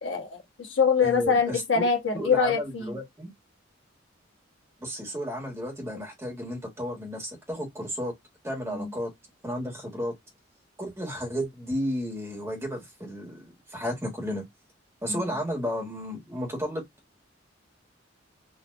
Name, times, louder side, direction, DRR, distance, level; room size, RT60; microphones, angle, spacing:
voice 1, 0.0-2.9 8.7-8.9 15.1-15.2, left 5 dB, 70° left, 1.3 m, -24 dB
voice 2, 1.0-1.9 2.1-3.3 4.8-8.1 8.4-9.1 9.4-10.1 10.8-14.4 15.0-16.8, equal, 15° right, 1.4 m, -33 dB
4.2 x 2.5 x 2.4 m
head